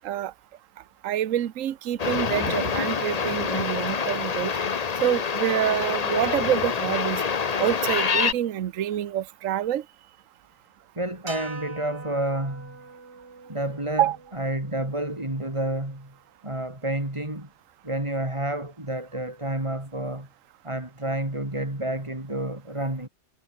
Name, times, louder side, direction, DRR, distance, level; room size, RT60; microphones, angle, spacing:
voice 1, 1.0-4.5 5.0-7.2 7.6-9.8 14.0-14.2, right 11 dB, 65° right, 1.2 m, -26 dB
sound 1, 2.0-8.3, left 6 dB, 35° left, 0.7 m, -26 dB
voice 2, 11.0-12.8 13.5-16.1 16.4-17.5 17.8-20.3 20.6-23.1, right 1 dB, 20° right, 3.9 m, -30 dB
sound 2, 11.3-15.6, right 4 dB, 50° right, 2.7 m, -43 dB
omnidirectional pair, 1.5 m